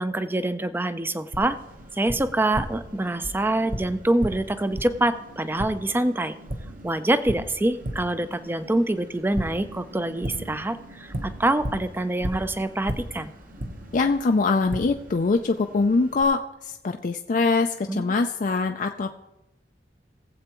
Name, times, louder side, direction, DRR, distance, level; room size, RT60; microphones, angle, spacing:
voice 1, 0.0-1.6 1.9-6.3 6.8-13.3 17.9-18.1, right 1 dB, 10° right, 11 dB, 0.4 m, -25 dB
Tap, 1.3-16.2, equal, 50° right, 1.1 m, -37 dB
voice 2, 13.9-19.2, left 3 dB, 45° left, 5 dB, 0.4 m, -23 dB
19.5 x 7.8 x 3.0 m, 0.93 s
head